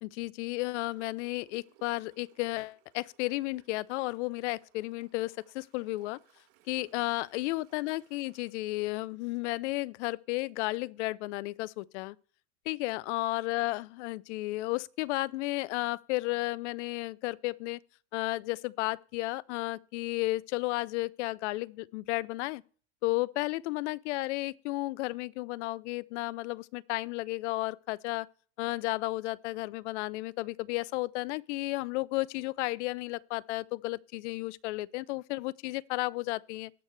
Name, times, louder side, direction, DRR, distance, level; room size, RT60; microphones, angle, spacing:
voice 1, 0.0-6.2 6.7-12.2 12.7-17.8 18.1-22.6 23.0-28.3 28.6-36.7, left 20 dB, 75° left, 0.5 m, -33 dB
Gurgling / Toilet flush, 0.6-10.0 10.5-10.6, right 13 dB, 80° right, 2.4 m, -65 dB
19.0 x 6.5 x 3.2 m
supercardioid pair, 140°, 35 cm